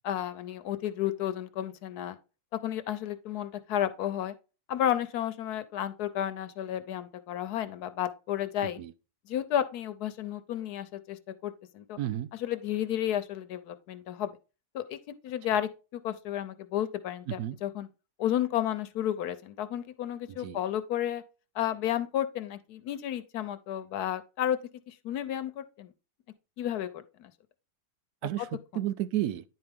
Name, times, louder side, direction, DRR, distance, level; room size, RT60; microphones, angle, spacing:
voice 1, 0.0-2.2 2.5-4.3 4.7-8.8 9.3-12.0 12.4-14.3 14.7-17.9 18.2-21.2 21.5-24.6 24.9-25.9 26.6-27.3, left 11 dB, 80° left, 1.2 m, -32 dB
voice 2, 12.0-12.3 17.3-17.6 20.3-20.6 28.2-28.5 28.7-29.4, right 13 dB, 75° right, 1.1 m, -32 dB
10.0 x 4.5 x 3.5 m
omnidirectional pair, 1.7 m